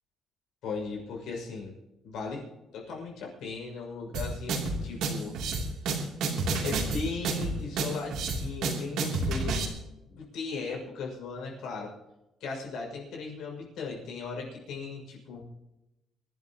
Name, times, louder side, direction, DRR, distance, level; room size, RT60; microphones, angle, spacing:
voice 1, 0.6-1.7 2.0-2.5 2.7-5.3 6.6-9.6 10.1-11.9 12.4-15.4, left 4 dB, 75° left, 0 dB, 6.3 m, -37 dB
sound 1, 4.1-9.6, right 3 dB, 80° right, 3.1 m, -30 dB
26.0 x 12.0 x 3.0 m, 0.96 s
cardioid pair, 145°, 0 cm